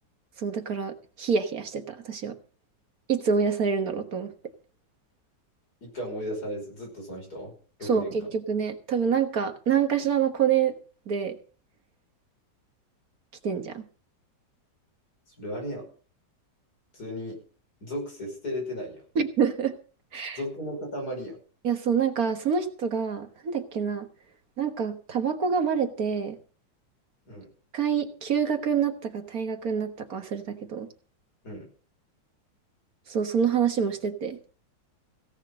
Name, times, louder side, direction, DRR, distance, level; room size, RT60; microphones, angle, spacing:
voice 1, 0.4-2.4 3.1-4.3 7.8-10.7 11.1-11.4 13.4-13.9 19.2-19.8 20.1-20.4 21.6-24.1 24.6-26.4 27.7-30.9 33.1-34.4, right 7 dB, 55° right, 7 dB, 1.8 m, -26 dB
voice 2, 5.8-7.5 7.8-8.3 15.4-15.8 16.9-17.4 17.8-19.0 20.4-21.4 27.3-27.5 31.4-31.7, equal, 55° left, 0 dB, 6.0 m, -35 dB
17.0 x 6.2 x 7.6 m, 0.40 s
omnidirectional pair, 1.9 m